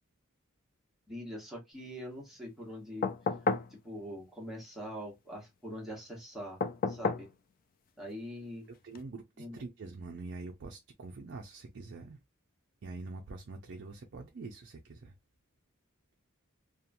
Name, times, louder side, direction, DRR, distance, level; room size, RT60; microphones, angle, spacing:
voice 1, 1.1-3.1 3.7-6.6 6.9-7.3 8.0-8.7 9.4-9.6, equal, ahead, 1.1 m, -43 dB
sound 1, 3.0-3.7 6.6-7.3 8.9-9.0, left 4 dB, 40° left, 0.3 m, -31 dB
voice 2, 8.8-12.2 12.8-15.1, right 3 dB, 55° right, 0.4 m, -45 dB
2.9 x 2.2 x 2.5 m
head